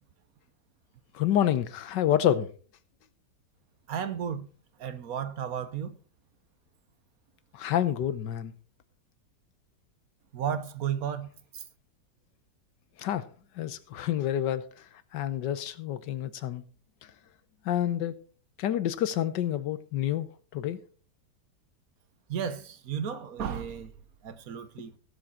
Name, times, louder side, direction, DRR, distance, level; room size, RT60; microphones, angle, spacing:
voice 1, 1.1-2.5 7.5-8.5 13.0-13.3 13.6-14.7 15.1-16.6 17.6-18.2 18.6-20.8, left 11 dB, 80° left, 1.5 m, -28 dB
voice 2, 3.9-4.5 4.8-6.0 10.3-11.3 11.5-11.6 22.3-23.9 24.2-24.9, right 8 dB, 60° right, 1.3 m, -33 dB
16.0 x 7.4 x 4.3 m
omnidirectional pair, 1.9 m